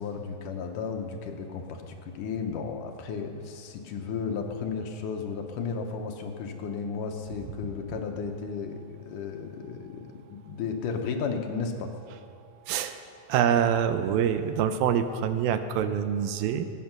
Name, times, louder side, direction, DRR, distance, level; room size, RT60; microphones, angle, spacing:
voice 1, 0.0-11.9, left 5 dB, 70° left, 4 dB, 2.3 m, -34 dB
voice 2, 12.7-13.0 13.3-16.7, right 8 dB, 85° right, 9 dB, 2.5 m, -25 dB
21.0 x 8.7 x 6.0 m, 2.4 s
omnidirectional pair, 4.2 m